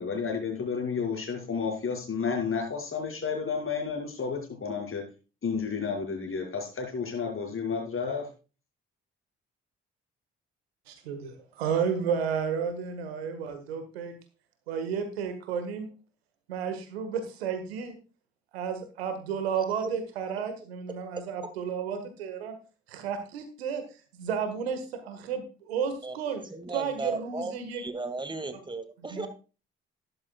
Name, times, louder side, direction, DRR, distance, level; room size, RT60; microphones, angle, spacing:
voice 1, 0.0-5.0 5.4-8.3, left 5 dB, 45° left, 1 dB, 6.0 m, -31 dB
voice 2, 10.9-14.1 14.7-15.9 16.5-18.0 18.5-22.6 22.9-23.8 24.1-26.4 26.7-27.8 29.1-29.3, right 7 dB, 85° right, 8 dB, 1.7 m, -32 dB
voice 3, 26.0-29.3, right 3 dB, 15° right, 10 dB, 2.2 m, -36 dB
13.0 x 11.5 x 2.4 m, 0.33 s
hypercardioid pair, 45°, 30 cm